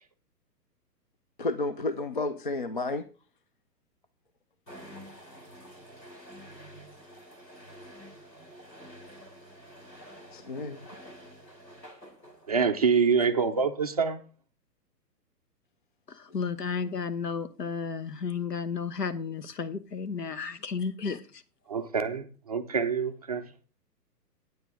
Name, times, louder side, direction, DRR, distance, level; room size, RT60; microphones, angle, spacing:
voice 1, 1.4-3.0 10.3-10.8 21.0-21.2, left 2 dB, 35° left, 0.4 m, -31 dB
sound 1, 4.7-12.9, equal, 85° left, 3.1 m, -49 dB
voice 2, 12.5-14.2 21.7-23.5, right 5 dB, 25° right, 0.4 m, -26 dB
voice 3, 16.1-21.4, left 5 dB, 70° left, 1.2 m, -33 dB
9.4 x 9.1 x 3.7 m
figure-of-eight pair, 125°, 50 cm